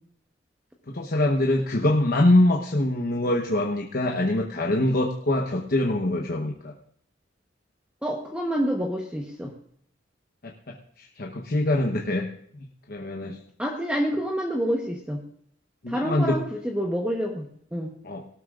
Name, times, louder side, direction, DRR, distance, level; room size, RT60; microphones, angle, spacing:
voice 1, 0.9-6.7 10.4-12.3 12.5-13.4 15.8-16.4 18.0-18.3, left 1 dB, 50° left, 0 dB, 1.0 m, -24 dB
voice 2, 8.0-9.5 13.6-15.2 15.9-17.9, equal, 5° right, 0 dB, 1.1 m, -28 dB
19.5 x 12.5 x 2.5 m, 0.65 s
head